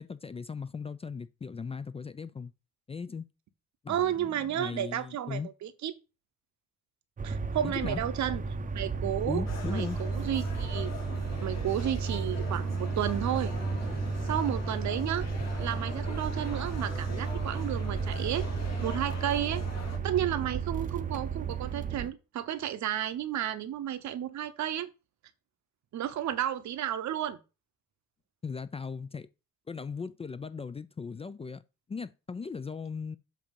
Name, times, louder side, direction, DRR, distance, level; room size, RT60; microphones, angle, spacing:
voice 1, 0.0-2.5 2.9-3.3 3.8-5.5 7.6-8.0 9.3-10.0 28.4-29.3 29.7-31.6 31.9-33.2, left 5 dB, 20° left, 0.3 m, -38 dB
voice 2, 3.9-5.9 7.2-8.4 8.7-10.9 11.4-13.5 14.2-15.3 15.6-18.5 18.8-19.6 20.0-24.9 25.9-27.4, right 11 dB, 70° right, 0.9 m, -32 dB
sound 1, 7.2-22.1, right 4 dB, 25° right, 0.6 m, -33 dB
sound 2, 9.5-20.0, left 5 dB, 60° left, 2.3 m, -44 dB
7.6 x 2.8 x 5.2 m
cardioid pair, 90°, 30 cm